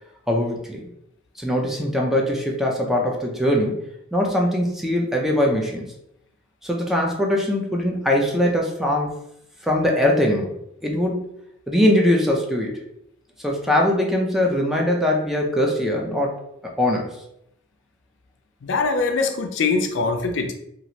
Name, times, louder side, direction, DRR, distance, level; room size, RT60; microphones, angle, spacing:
voice 1, 0.3-0.8 1.4-3.8 4.1-5.9 6.6-9.1 9.6-10.6 10.8-11.3 11.7-12.8 13.4-16.4 16.8-17.2, left 1 dB, ahead, -1 dB, 0.4 m, -21 dB
voice 2, 18.6-20.5, left 4 dB, 70° left, 5 dB, 0.4 m, -22 dB
2.9 x 2.5 x 2.7 m, 0.78 s
head